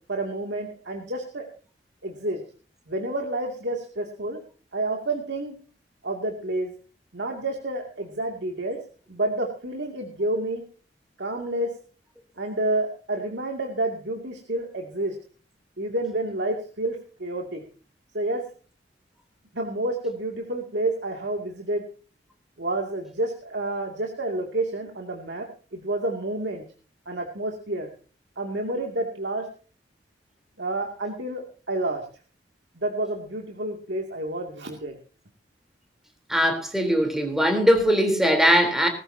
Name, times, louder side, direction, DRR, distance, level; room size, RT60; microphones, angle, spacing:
voice 1, 0.1-1.5 2.0-2.4 2.9-4.4 4.7-5.6 6.0-6.7 7.1-8.8 9.1-10.6 11.2-11.7 12.4-15.2 15.8-17.6 18.1-18.4 19.5-21.8 22.6-25.5 25.7-26.6 27.1-27.9 28.4-29.5 30.6-32.1 32.7-35.0, right 2 dB, 75° right, 1 dB, 2.6 m, -29 dB
voice 2, 36.3-38.9, equal, 5° right, 4 dB, 3.7 m, -20 dB
20.5 x 14.0 x 2.8 m, 0.38 s
head